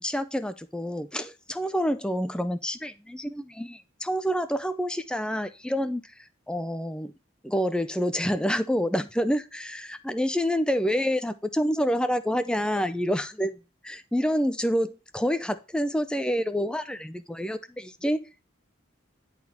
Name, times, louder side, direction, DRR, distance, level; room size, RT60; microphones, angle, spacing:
voice 1, 0.0-6.1 6.5-7.1 7.4-13.6 13.8-18.3, equal, 5° left, 11 dB, 0.4 m, -28 dB
10.5 x 4.1 x 4.3 m, 0.30 s
head